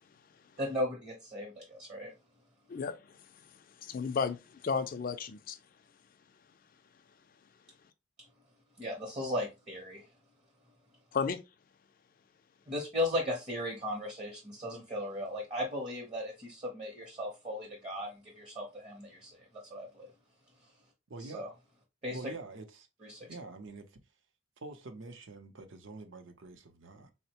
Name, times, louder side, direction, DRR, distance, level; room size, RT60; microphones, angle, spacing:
voice 1, 0.6-2.1 8.8-10.1 12.7-20.1 20.6-20.7 21.2-21.5 22.0-22.2 23.0-23.3, left 1 dB, 30° right, 0.7 m, -36 dB
voice 2, 3.8-4.4 4.6-5.6 11.1-11.4, left 5 dB, 40° left, 0.3 m, -32 dB
voice 3, 21.1-21.5 22.1-22.9 23.3-24.0 24.6-27.1, right 3 dB, 65° right, 0.6 m, -46 dB
3.9 x 2.1 x 2.8 m
head